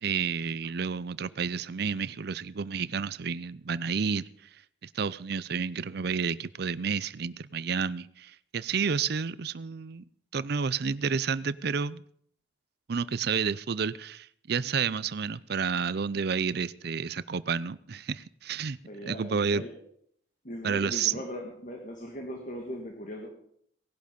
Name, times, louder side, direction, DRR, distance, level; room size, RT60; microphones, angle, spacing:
voice 1, 0.0-4.3 4.8-10.0 10.3-12.0 12.9-18.8 19.1-19.6 20.6-21.2, right 6 dB, 55° right, 18 dB, 0.5 m, -30 dB
voice 2, 18.8-19.8 20.4-23.3, equal, 40° left, 3 dB, 1.8 m, -39 dB
18.5 x 11.5 x 5.3 m, 0.66 s
head